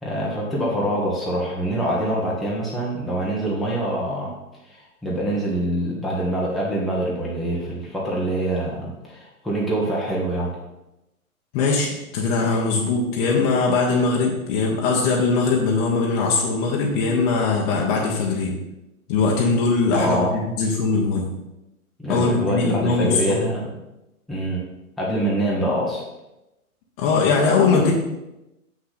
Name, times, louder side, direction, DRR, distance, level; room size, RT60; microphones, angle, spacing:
voice 1, 0.0-4.3 4.7-10.6 19.9-20.4 22.0-23.7 24.3-24.7 25.0-26.0, right 1 dB, ahead, -6 dB, 1.3 m, -25 dB
voice 2, 11.5-18.6 19.1-21.3 22.1-23.4 27.0-27.9, left 4 dB, 30° left, -2 dB, 1.2 m, -21 dB
7.1 x 5.9 x 4.2 m, 0.94 s
figure-of-eight pair, 120°, 44 cm